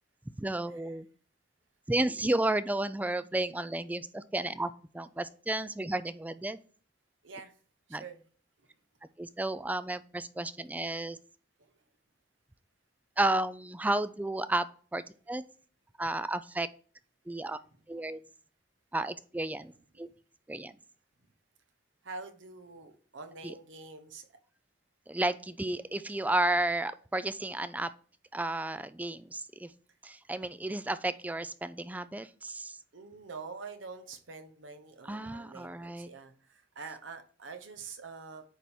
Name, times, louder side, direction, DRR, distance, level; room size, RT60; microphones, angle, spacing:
voice 1, 0.4-1.1 1.9-6.6 7.9-8.0 9.2-11.2 13.2-14.7 14.9-15.4 16.0-16.7 17.3-17.6 17.9-18.2 18.9-19.7 20.0-20.1 20.5-20.7 23.4-23.5 25.1-27.9 28.3-29.7 30.0-32.8 35.1-36.1, right 2 dB, 10° right, 14 dB, 0.3 m, -32 dB
voice 2, 7.9-8.2 11.6-11.7 17.4-17.6 19.9-20.1 22.0-24.3 32.9-38.4, right 4 dB, 80° right, 8 dB, 1.0 m, -46 dB
9.1 x 3.5 x 4.3 m, 0.43 s
head